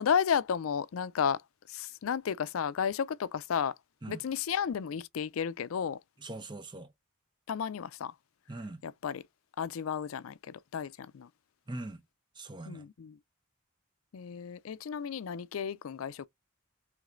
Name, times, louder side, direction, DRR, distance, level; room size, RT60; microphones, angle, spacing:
voice 1, 0.0-1.4 1.7-3.7 4.1-6.0 7.5-8.1 8.8-9.2 9.6-11.3 12.7-13.2 14.1-16.3, left 7 dB, 85° left, 0.4 m, -32 dB
voice 2, 6.2-6.9 8.5-8.8 11.7-12.0 12.4-12.8, right 2 dB, 20° right, 0.7 m, -41 dB
4.8 x 3.2 x 2.5 m
head